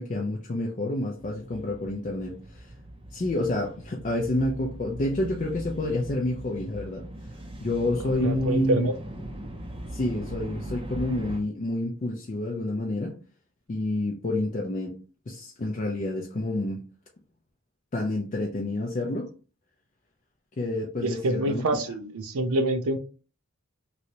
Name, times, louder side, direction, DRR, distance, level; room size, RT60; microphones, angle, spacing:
voice 1, 0.0-2.7 3.1-7.1 7.6-8.9 9.9-13.2 13.7-14.9 15.3-16.8 17.9-19.3 20.6-21.6, left 1 dB, 35° left, 0.4 m, -29 dB
sound 1, 1.2-11.4, right 1 dB, 25° right, 0.5 m, -40 dB
voice 2, 8.0-8.9 21.0-23.0, right 1 dB, 70° right, 0.5 m, -26 dB
3.1 x 2.7 x 2.8 m
head